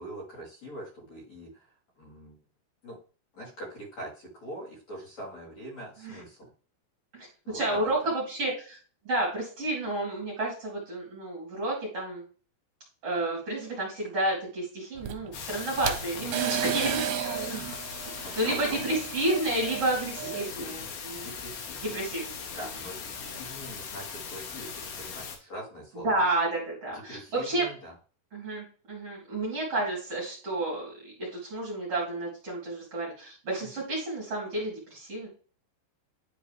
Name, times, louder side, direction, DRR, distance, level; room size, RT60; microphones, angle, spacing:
voice 1, 0.0-2.4 2.8-3.0 3.3-6.5 7.5-7.9 18.1-18.8 20.2-22.0 22.6-26.2 26.9-27.9 33.6-33.7, equal, 45° left, -5 dB, 3.4 m, -43 dB
voice 2, 7.1-8.8 9.0-12.2 13.0-17.8 18.4-21.3 21.8-22.7 26.0-27.7 28.3-35.3, right 2 dB, 40° right, -5 dB, 2.9 m, -31 dB
sound 1, 15.0-20.4, right 11 dB, 85° right, 2.6 m, -34 dB
sound 2, 15.3-25.4, left 6 dB, 70° left, 2.9 m, -39 dB
10.5 x 3.8 x 3.3 m, 0.39 s
omnidirectional pair, 4.7 m